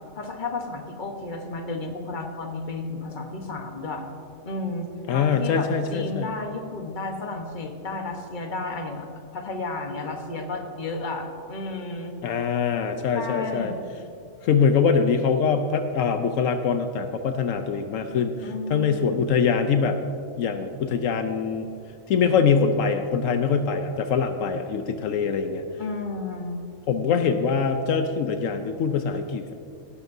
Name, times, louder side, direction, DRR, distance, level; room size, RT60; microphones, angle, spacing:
voice 1, 0.1-4.0 4.4-9.1 9.3-12.2 13.1-13.8 18.4-19.1 25.8-26.6, left 3 dB, 40° left, 3 dB, 1.3 m, -32 dB
voice 2, 5.1-6.3 12.2-13.7 14.4-20.0 20.4-21.7 22.1-25.7 26.9-29.5, left 6 dB, 80° left, 7 dB, 1.0 m, -23 dB
17.0 x 12.5 x 2.7 m, 2.4 s
omnidirectional pair, 1.4 m